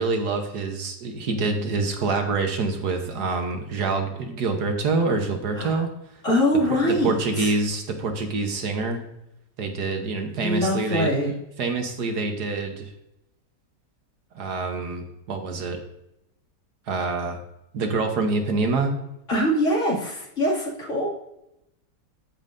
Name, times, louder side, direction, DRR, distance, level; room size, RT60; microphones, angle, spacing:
voice 1, 0.0-5.9 6.8-9.0 9.6-11.1 11.6-12.9 14.3-15.8 16.9-17.4 17.7-18.9, right 3 dB, 65° right, 4 dB, 1.5 m, -26 dB
voice 2, 6.2-7.1 7.4-7.5 10.4-11.3 19.3-21.1, equal, 45° left, -5 dB, 2.7 m, -23 dB
14.0 x 5.4 x 2.6 m, 0.86 s
omnidirectional pair, 1.9 m